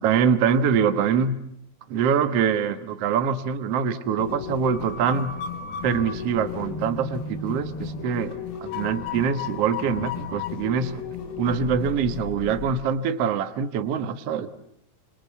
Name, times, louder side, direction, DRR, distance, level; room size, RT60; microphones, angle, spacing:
voice 1, 0.0-1.4 1.9-5.3 5.8-8.3 8.6-11.0 11.4-14.5, right 7 dB, 65° right, 10 dB, 1.6 m, -24 dB
sound 1, 4.2-12.7, left 6 dB, 75° left, 3.6 m, -34 dB
27.0 x 26.5 x 8.2 m, 0.70 s
omnidirectional pair, 4.4 m